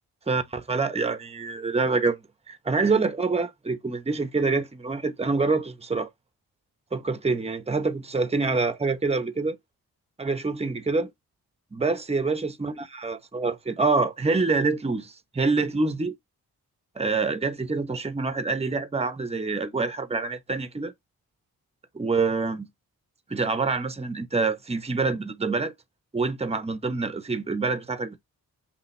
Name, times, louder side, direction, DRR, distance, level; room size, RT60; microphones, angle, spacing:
voice 1, 0.3-2.2 2.5-6.1 6.9-9.6 10.2-11.1 11.7-16.1 17.0-20.9 21.9-22.7 23.3-25.7 26.1-28.2, right 3 dB, 15° right, 0.9 m, -26 dB
5.7 x 2.4 x 3.2 m
supercardioid pair, 45°, 37 cm